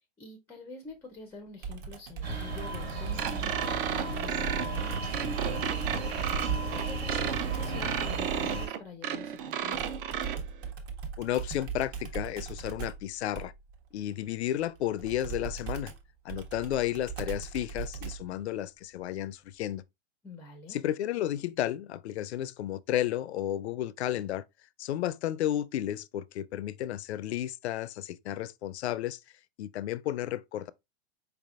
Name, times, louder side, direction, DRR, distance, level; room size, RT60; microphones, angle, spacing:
voice 1, 0.2-6.0 6.7-9.8 20.2-20.8, left 2 dB, 10° left, 0.4 m, -46 dB
Computer keyboard, 1.6-7.9 9.7-18.4, right 6 dB, 40° right, 1.0 m, -40 dB
sound 1, 2.2-8.7, right 3 dB, 75° right, 1.7 m, -33 dB
sound 2, 3.2-10.4, right 9 dB, 55° right, 0.6 m, -33 dB
voice 2, 11.2-13.5 13.9-15.9 16.2-19.8 20.7-24.4 24.8-29.2 29.6-30.7, left 12 dB, 85° left, 0.5 m, -32 dB
4.8 x 3.4 x 2.3 m
hypercardioid pair, 135°, 32 cm